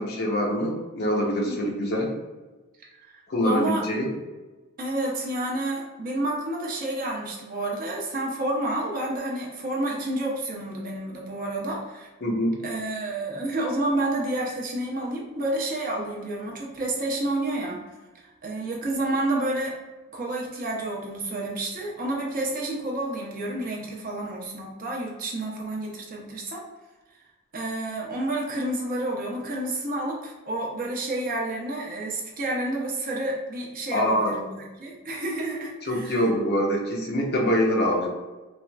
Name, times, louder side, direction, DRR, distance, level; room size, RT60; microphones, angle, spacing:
voice 1, 0.0-2.1 3.3-4.1 12.2-12.5 33.9-34.3 35.8-38.1, equal, 50° left, -1 dB, 0.7 m, -24 dB
voice 2, 3.1-3.8 4.8-12.1 12.6-17.8 18.1-19.7 20.1-26.6 27.5-36.2, right 1 dB, 45° right, -2 dB, 0.7 m, -30 dB
4.2 x 2.4 x 2.2 m, 1.2 s
head